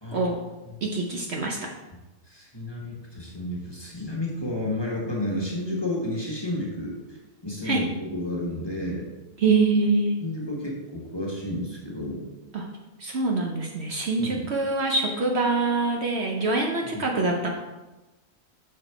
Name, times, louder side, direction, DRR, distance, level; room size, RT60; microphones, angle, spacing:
voice 1, 0.0-0.3 0.7-0.8 2.3-7.2 7.4-9.1 10.2-12.2 14.2-14.5 16.9-17.1, left 1 dB, 20° left, -3 dB, 1.1 m, -31 dB
voice 2, 0.8-1.6 7.6-7.8 9.4-10.1 12.5-12.6 13.0-17.5, right 3 dB, 55° right, 1 dB, 0.9 m, -24 dB
6.5 x 4.0 x 4.5 m, 1.1 s
omnidirectional pair, 1.4 m